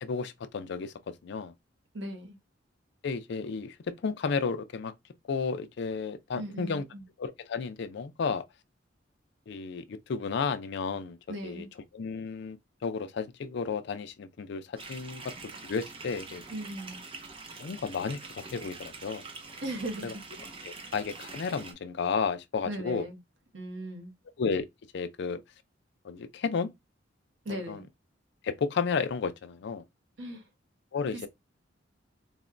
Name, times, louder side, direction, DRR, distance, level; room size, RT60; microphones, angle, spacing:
voice 1, 0.0-1.5 3.0-4.9 5.3-6.8 7.2-8.4 9.5-11.7 11.9-16.4 17.6-19.3 20.0-20.1 20.6-23.1 24.4-24.7 24.9-25.4 26.0-26.7 27.5-27.8 28.4-29.8 30.9-31.3, left 5 dB, 65° left, 0.4 m, -33 dB
voice 2, 1.9-2.4 6.3-7.0 11.3-11.7 16.5-17.0 19.6-20.1 22.6-23.2 23.5-24.1 27.4-27.8 30.2-30.4, right 1 dB, 70° right, 0.9 m, -38 dB
sound 1, 14.8-21.7, right 3 dB, 30° right, 0.6 m, -45 dB
4.0 x 2.1 x 2.4 m
head